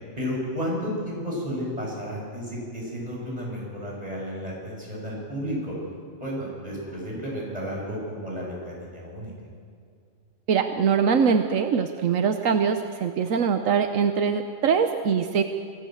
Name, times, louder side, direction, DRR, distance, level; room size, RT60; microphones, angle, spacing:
voice 1, 0.2-5.7 6.2-9.3, equal, 30° right, -3 dB, 7.7 m, -32 dB
voice 2, 10.5-15.4, right 6 dB, 80° right, 7 dB, 1.3 m, -23 dB
25.5 x 17.0 x 7.9 m, 2.2 s
omnidirectional pair, 1.3 m